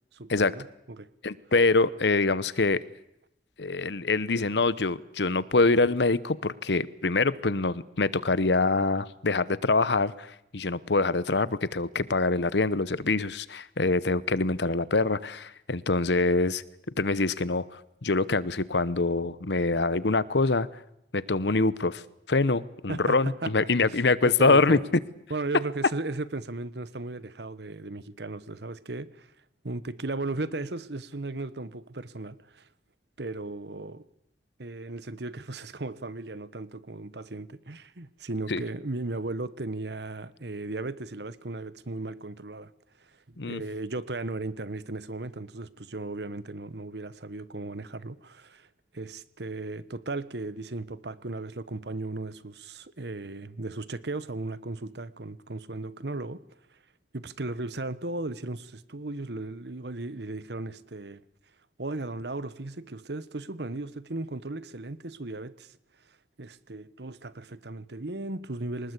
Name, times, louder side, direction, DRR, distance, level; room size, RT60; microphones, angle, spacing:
voice 1, 0.1-1.1 22.9-23.9 24.2-24.8 25.3-29.3 29.6-32.7 33.2-34.0 34.6-42.7 43.3-48.7 48.9-56.4 57.1-61.2 61.8-65.8 66.4-68.9, right 2 dB, 75° right, 1.2 m, -36 dB
voice 2, 1.2-2.8 3.6-16.6 17.0-20.7 21.1-22.0 22.3-24.8 38.5-38.6 43.4-43.6, left 3 dB, 80° left, 1.0 m, -25 dB
24.0 x 20.0 x 8.3 m
head